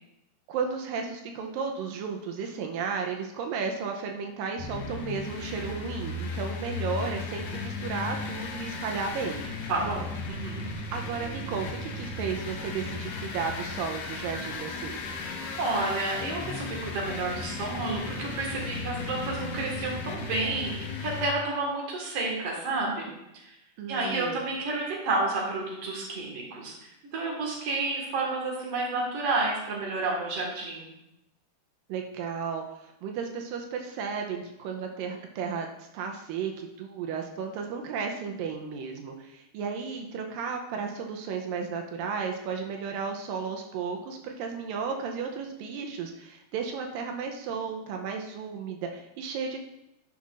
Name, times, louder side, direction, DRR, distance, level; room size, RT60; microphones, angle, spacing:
voice 1, 0.5-9.5 10.9-15.1 23.8-24.5 31.9-49.6, right 5 dB, 90° right, 3 dB, 2.4 m, -34 dB
sound 1, 4.6-21.3, left 3 dB, 65° left, 1.8 m, -36 dB
voice 2, 9.7-10.7 15.6-23.5 23.9-26.7 27.1-30.9, right 3 dB, 50° right, -3 dB, 2.4 m, -30 dB
12.0 x 5.6 x 2.5 m, 0.87 s
omnidirectional pair, 3.9 m